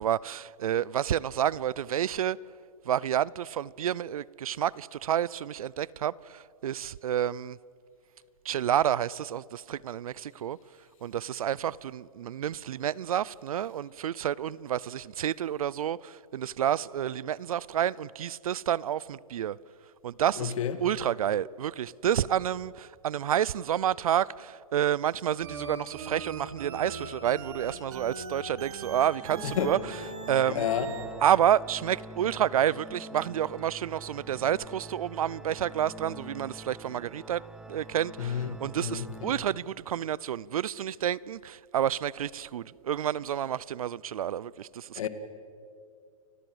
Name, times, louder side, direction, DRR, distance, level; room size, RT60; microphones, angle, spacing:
voice 1, 0.0-2.4 2.8-7.6 8.4-10.6 11.0-19.6 20.0-20.5 20.8-29.8 30.3-30.6 31.2-37.4 37.7-45.1, right 10 dB, 85° right, 0.6 m, -29 dB
voice 2, 20.4-20.8 29.4-29.7 30.5-30.9 38.2-39.4 45.0-45.1, left 9 dB, 70° left, 2.2 m, -31 dB
sound 1, 25.4-31.1, right 5 dB, 55° right, 4.0 m, -40 dB
Organ, 29.1-40.0, right 2 dB, 5° right, 0.8 m, -46 dB
29.5 x 15.5 x 7.9 m
hypercardioid pair, 145°, 18 cm